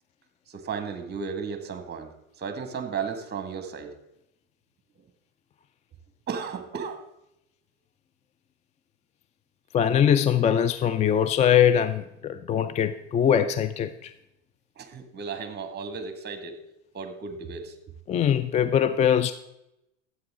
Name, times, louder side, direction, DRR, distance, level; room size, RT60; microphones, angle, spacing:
voice 1, 0.5-2.1 2.4-3.9 6.3-7.1 14.8-16.6 16.9-17.8, right 5 dB, 25° right, 8 dB, 1.8 m, -34 dB
voice 2, 9.7-14.1 18.1-19.3, left 9 dB, 20° left, 12 dB, 0.4 m, -22 dB
12.5 x 8.4 x 3.7 m, 0.84 s
hypercardioid pair, 95°, 37 cm